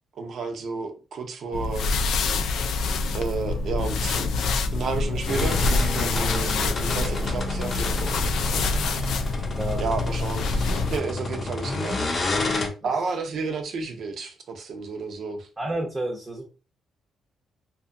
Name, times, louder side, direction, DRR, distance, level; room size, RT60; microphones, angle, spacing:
voice 1, 0.1-1.9 3.1-4.3 4.7-9.1 9.8-12.4 12.8-15.5, right 4 dB, 60° right, 0.6 m, -32 dB
sound 1, 1.5-11.0, left 3 dB, 80° left, 0.3 m, -26 dB
sound 2, 5.3-12.7, left 3 dB, 35° left, 0.6 m, -30 dB
voice 2, 15.6-16.5, right 1 dB, 15° right, 0.6 m, -30 dB
2.7 x 2.3 x 2.5 m
cardioid pair, 110°, 0 cm